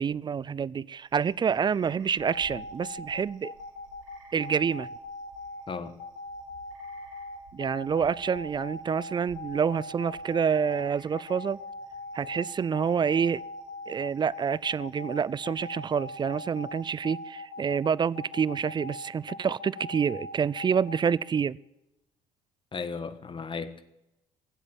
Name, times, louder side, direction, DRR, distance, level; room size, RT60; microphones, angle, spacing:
voice 1, 0.0-3.5 4.3-4.9 7.5-11.6 12.1-13.4 13.9-21.6, right 7 dB, 25° right, 0.4 m, -27 dB
sound 1, 1.0-17.2, right 5 dB, 80° right, 3.4 m, -58 dB
sound 2, 2.2-21.1, left 3 dB, 60° left, 3.8 m, -40 dB
voice 2, 5.7-6.0 22.7-23.8, left 5 dB, 30° left, 1.3 m, -35 dB
17.0 x 8.0 x 9.0 m
hypercardioid pair, 70°, 17 cm